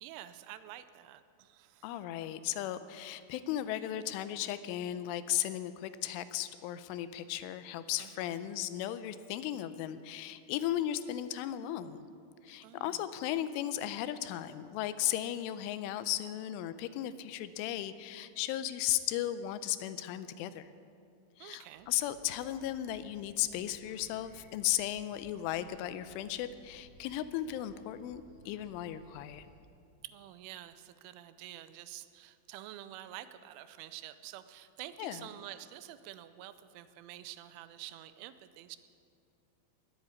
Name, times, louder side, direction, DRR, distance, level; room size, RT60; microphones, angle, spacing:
voice 1, 0.0-1.9 8.0-8.4 12.6-13.1 21.4-21.9 30.0-38.8, right 13 dB, 85° right, 13 dB, 3.1 m, -48 dB
voice 2, 1.8-12.0 12.4-20.7 21.4-29.5 35.0-35.2, left 12 dB, 85° left, 13 dB, 3.1 m, -36 dB
sound 1, 21.7-29.5, right 2 dB, 70° right, 6.5 m, -60 dB
19.5 x 8.2 x 8.4 m, 2.4 s
omnidirectional pair, 5.6 m